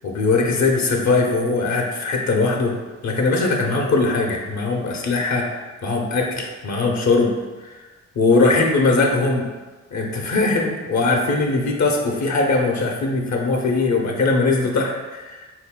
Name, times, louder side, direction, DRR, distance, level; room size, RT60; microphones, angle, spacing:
voice 1, 0.0-2.8 3.0-5.5 5.8-7.3 7.6-7.8 8.2-9.4 9.9-15.4, left 3 dB, 65° left, 1 dB, 0.8 m, -20 dB
4.0 x 2.7 x 3.7 m, 1.2 s
supercardioid pair, 50°, 30 cm